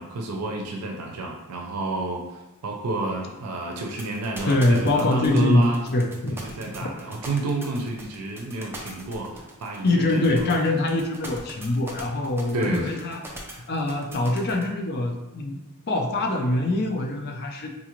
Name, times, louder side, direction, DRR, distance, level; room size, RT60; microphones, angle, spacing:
voice 1, 0.0-2.2 2.6-5.9 6.3-10.5 12.5-13.0, right 2 dB, 85° right, 0 dB, 0.5 m, -30 dB
sound 1, 3.7-14.6, right 1 dB, 10° right, 0.5 m, -40 dB
voice 2, 4.5-6.4 9.8-13.2 13.7-15.6 15.9-17.7, left 2 dB, 45° left, 2 dB, 0.5 m, -23 dB
3.9 x 2.4 x 2.9 m, 1.0 s
head